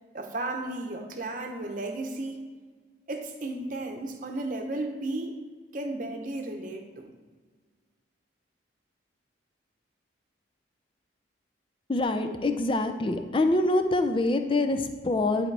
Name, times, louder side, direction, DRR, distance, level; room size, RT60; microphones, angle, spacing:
voice 1, 0.1-2.5 3.1-5.4 5.7-7.1, right 2 dB, 45° right, 4 dB, 0.8 m, -34 dB
voice 2, 11.9-15.5, left 2 dB, 25° left, 7 dB, 0.5 m, -25 dB
11.0 x 4.3 x 3.3 m, 1.5 s
head